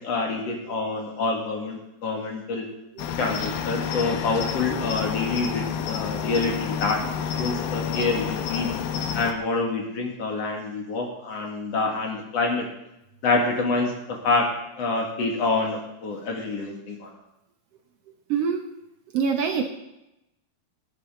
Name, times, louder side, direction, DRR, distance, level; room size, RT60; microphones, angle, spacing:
voice 1, 0.0-2.6 3.2-8.7 9.1-12.6 13.2-13.9 14.2-14.4 14.8-17.1, left 3 dB, 45° left, 0 dB, 2.8 m, -27 dB
Cricket, 3.0-9.3, left 7 dB, 75° left, 2.7 m, -29 dB
voice 2, 19.1-19.6, right 6 dB, 90° right, 4 dB, 1.3 m, -24 dB
19.0 x 10.0 x 3.9 m, 0.87 s
omnidirectional pair, 4.3 m